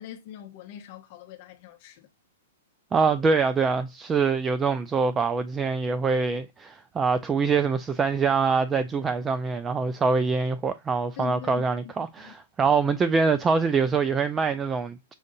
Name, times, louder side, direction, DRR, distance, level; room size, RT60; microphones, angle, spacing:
voice 1, 0.0-2.1 11.2-11.7 12.2-12.3, left 10 dB, 50° left, 0.7 m, -42 dB
voice 2, 2.9-15.1, right 5 dB, 15° right, 0.3 m, -24 dB
6.4 x 2.6 x 2.6 m
hypercardioid pair, 135°, 0 cm